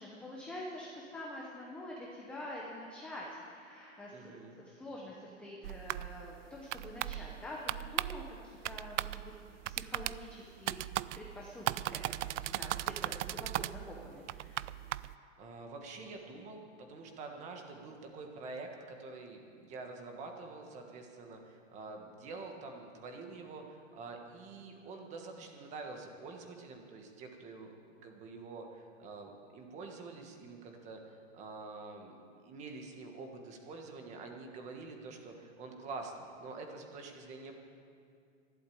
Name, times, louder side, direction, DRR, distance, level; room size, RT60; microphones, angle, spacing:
voice 1, 0.0-9.3 9.7-10.8 11.1-14.7, left 1 dB, 5° left, -4 dB, 0.7 m, -46 dB
voice 2, 4.1-4.6 15.4-27.7 28.0-37.5, right 3 dB, 20° right, 3 dB, 1.4 m, -47 dB
sound 1, 5.6-15.1, right 14 dB, 70° right, 0.5 m, -38 dB
12.0 x 11.5 x 8.6 m, 2.4 s
hypercardioid pair, 160°, 38 cm